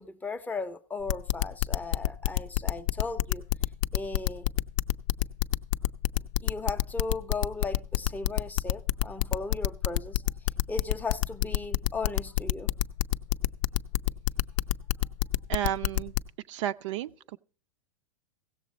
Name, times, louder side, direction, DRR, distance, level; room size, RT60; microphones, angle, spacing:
voice 1, 0.0-3.4 3.9-4.5 6.4-10.2 10.7-12.7, left 3 dB, 10° left, 0.5 m, -36 dB
sound 1, 1.1-16.2, left 14 dB, 65° left, 0.5 m, -26 dB
voice 2, 15.5-16.1 16.5-17.4, right 11 dB, 60° right, 0.4 m, -32 dB
16.5 x 6.9 x 4.0 m
hypercardioid pair, 130°, 18 cm